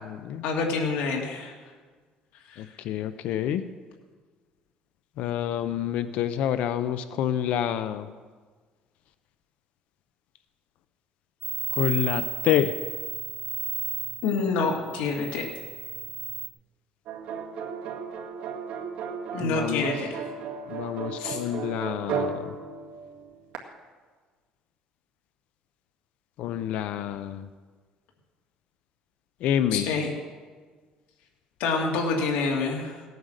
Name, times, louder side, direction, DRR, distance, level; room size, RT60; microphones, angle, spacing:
voice 1, 0.4-1.5 2.5-2.6 14.2-15.5 19.3-20.2 21.2-21.4 29.7-30.1 31.6-33.0, left 4 dB, 90° left, 0 dB, 2.6 m, -27 dB
voice 2, 2.6-3.6 5.2-8.1 11.7-12.7 19.4-19.9 20.7-22.5 26.4-27.5 29.4-29.9, left 10 dB, 65° left, 12 dB, 0.7 m, -28 dB
sound 1, 11.4-16.5, right 5 dB, 5° right, 1.7 m, -34 dB
sound 2, 17.1-23.6, right 5 dB, 65° right, 2.0 m, -34 dB
17.5 x 9.3 x 6.6 m, 1.5 s
cardioid pair, 140°, 2 cm